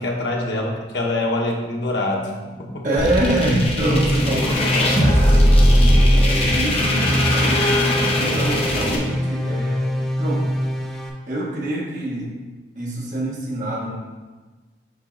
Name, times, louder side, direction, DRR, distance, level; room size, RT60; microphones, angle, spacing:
voice 1, 0.0-2.3 2.6-2.8, left 2 dB, 80° left, -1 dB, 1.1 m, -24 dB
voice 2, 2.8-5.7 6.2-7.7 8.1-9.9 10.2-10.6 11.3-12.3 12.7-14.0, right 1 dB, 45° right, -6 dB, 1.2 m, -25 dB
sound 1, 3.0-9.0, equal, 30° left, 0.9 m, -18 dB
sound 2, 3.8-11.1, equal, 5° left, 0.5 m, -25 dB
5.4 x 5.0 x 3.8 m, 1.3 s
head